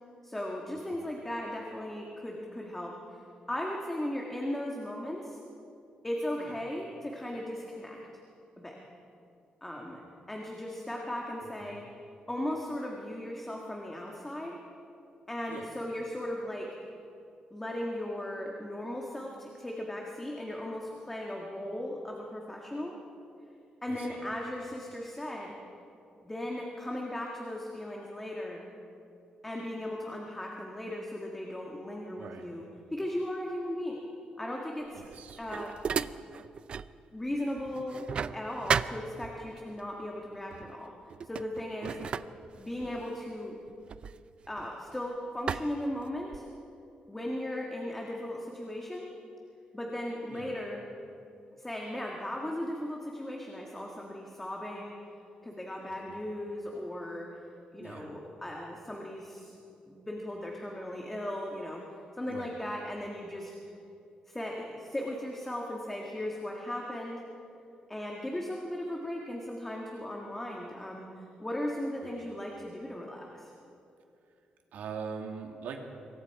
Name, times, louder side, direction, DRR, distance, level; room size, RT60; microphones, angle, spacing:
voice 1, 0.2-3.2 3.5-5.4 6.0-8.0 8.6-8.8 9.6-10.0 10.3-11.9 12.3-14.6 15.3-16.8 17.5-23.0 23.8-25.6 26.2-28.6 29.4-32.7 32.9-34.0 34.4-35.0 35.4-35.8 37.1-40.9 41.2-41.9 42.6-43.6 44.5-46.4 47.1-49.1 49.7-50.8 51.6-55.0 55.4-57.4 57.7-59.6 59.9-61.8 62.2-63.7 64.3-67.2 67.9-73.5, left 1 dB, 10° left, -1 dB, 1.8 m, -37 dB
voice 2, 23.9-24.2 32.2-32.5 34.9-35.4 41.8-42.0 50.3-50.5 56.1-56.2 57.8-58.1 62.3-62.5 72.0-72.1 74.7-75.8, right 6 dB, 85° right, 2 dB, 2.7 m, -42 dB
sound 1, 34.9-37.0 37.3-39.6 40.5-40.7 41.1-44.9 45.5-46.6, right 6 dB, 40° right, 0.5 m, -35 dB
26.5 x 23.0 x 4.8 m, 2.7 s
wide cardioid pair, 170°, 3 cm